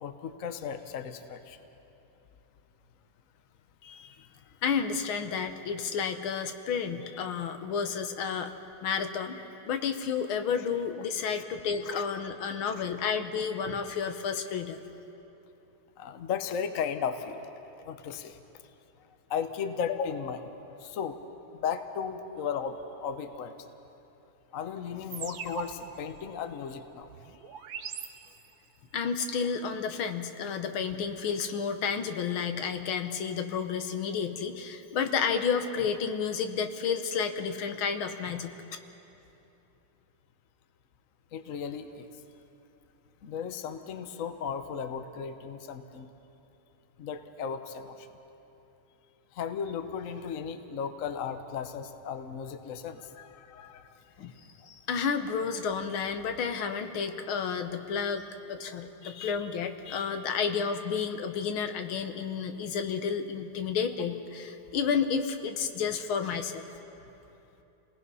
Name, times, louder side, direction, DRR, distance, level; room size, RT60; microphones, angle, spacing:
voice 1, 0.0-1.6 11.4-11.5 11.8-12.3 16.0-17.5 17.8-18.4 19.3-20.4 20.8-21.2 21.5-23.5 24.5-27.1 41.3-42.1 43.2-46.1 47.0-48.1 49.3-53.9, left 7 dB, 50° left, 8 dB, 1.0 m, -35 dB
voice 2, 3.8-4.2 4.6-8.5 8.8-14.8 28.9-38.5 54.2-54.3 54.7-58.2 58.5-66.7, left 6 dB, 70° left, 7 dB, 1.8 m, -31 dB
sound 1, 25.1-28.8, right 8 dB, 65° right, 1.5 m, -42 dB
29.5 x 19.0 x 5.5 m, 3.0 s
omnidirectional pair, 2.4 m